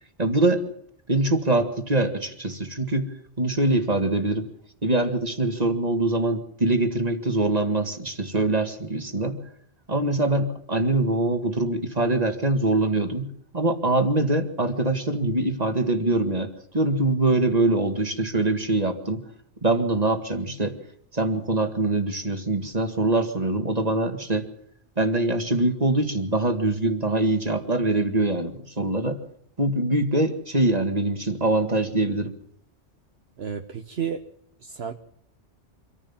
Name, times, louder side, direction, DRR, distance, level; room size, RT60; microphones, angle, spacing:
voice 1, 0.2-0.7 1.1-4.5 4.8-9.4 9.9-13.3 13.5-19.2 19.6-20.8 21.1-24.5 25.0-29.2 29.6-32.3, right 2 dB, 35° right, 6 dB, 2.1 m, -23 dB
voice 2, 33.4-34.2 34.6-34.9, right 7 dB, 60° right, 6 dB, 1.3 m, -31 dB
25.5 x 14.5 x 7.2 m, 0.66 s
omnidirectional pair, 1.2 m